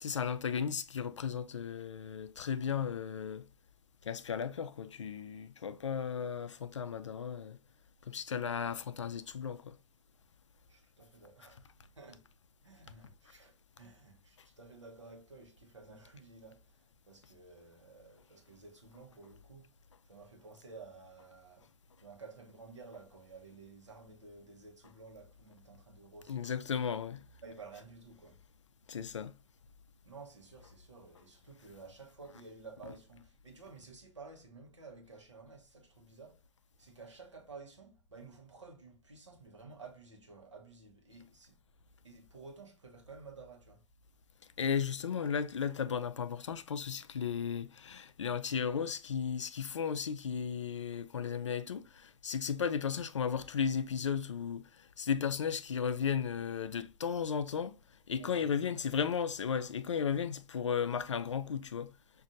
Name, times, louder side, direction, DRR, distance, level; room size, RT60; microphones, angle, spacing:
voice 1, 0.0-3.5 4.0-7.6 8.0-9.8 26.3-27.3 28.9-29.3 44.6-57.8 58.1-62.0, left 7 dB, 80° left, 0.4 m, -35 dB
voice 2, 10.7-11.7 11.9-12.3 12.6-19.8 20.0-21.7 22.0-26.5 27.4-28.4 30.0-36.5 36.8-41.6 42.0-43.8 58.2-58.8, right 4 dB, 85° right, 1.0 m, -53 dB
6.0 x 2.6 x 2.5 m
figure-of-eight pair, 85°, 15 cm